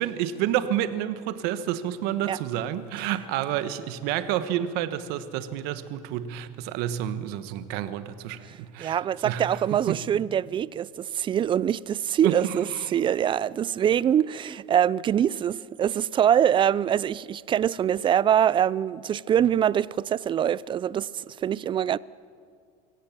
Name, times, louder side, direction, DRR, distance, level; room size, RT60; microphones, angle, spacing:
voice 1, 0.0-10.0 12.2-13.0, right 11 dB, 65° right, 1.3 m, -29 dB
voice 2, 8.8-22.0, right 9 dB, 30° right, 0.4 m, -24 dB
24.5 x 16.5 x 7.4 m
supercardioid pair, 115°, 18 cm